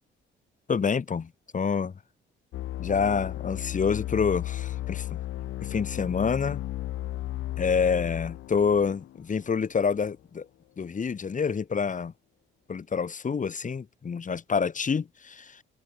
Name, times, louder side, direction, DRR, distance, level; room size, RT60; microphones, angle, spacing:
voice 1, 0.7-1.9 2.8-5.1 5.6-6.6 7.6-10.5 10.8-12.1 12.7-15.6, left 6 dB, 40° left, 4.1 m, -27 dB
sound 1, 2.5-10.0, left 14 dB, 85° left, 3.8 m, -34 dB
cardioid pair, 90°, 20 cm